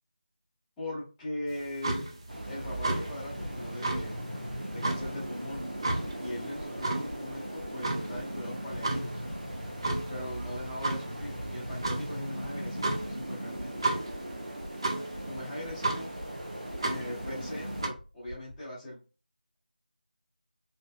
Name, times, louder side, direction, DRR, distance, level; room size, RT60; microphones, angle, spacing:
voice 1, 0.8-2.1 2.5-4.3 4.7-5.7 6.2-9.2 10.1-14.0 15.2-16.1 16.8-19.0, left 1 dB, 5° left, -11 dB, 0.7 m, -40 dB
sound 1, 1.5-17.9, right 2 dB, 30° right, 0.4 m, -35 dB
sound 2, 2.3-17.9, right 1 dB, 60° right, 0.9 m, -39 dB
sound 3, 3.4-18.7, left 1 dB, 85° left, 0.7 m, -47 dB
3.1 x 2.7 x 2.3 m, 0.33 s
figure-of-eight pair, 165°, 5 cm